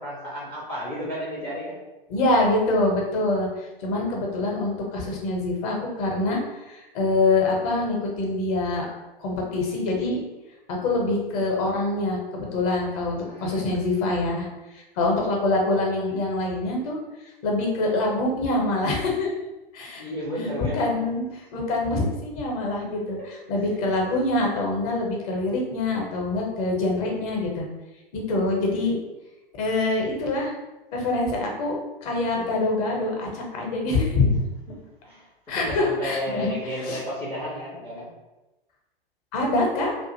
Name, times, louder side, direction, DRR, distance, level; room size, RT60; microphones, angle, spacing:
voice 1, 0.0-1.8 13.2-13.6 20.0-21.0 22.8-22.9 23.2-23.3 34.7-34.8 35.0-38.1, equal, 10° left, -6 dB, 0.4 m, -33 dB
voice 2, 2.1-6.4 6.7-8.9 9.2-10.2 10.7-14.5 14.7-17.0 17.4-19.3 19.7-20.0 20.7-21.3 21.5-27.7 28.1-29.0 29.6-30.5 30.9-31.8 32.0-34.4 35.5-36.5 36.8-37.0 39.3-39.9, left 2 dB, 40° left, -1 dB, 0.8 m, -25 dB
2.4 x 2.4 x 2.7 m, 1.1 s
figure-of-eight pair, 105°, 29 cm